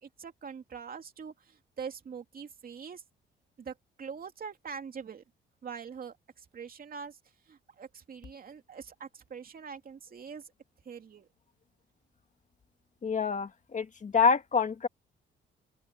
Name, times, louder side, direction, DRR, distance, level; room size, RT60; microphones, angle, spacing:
voice 1, 0.0-3.0 3.6-5.2 5.6-7.2 7.5-10.4 10.8-11.3, right 6 dB, 45° right, 2.8 m, -43 dB
voice 2, 13.0-14.9, left 5 dB, 40° left, 1.8 m, -27 dB
open air
cardioid pair, 90°, 20 cm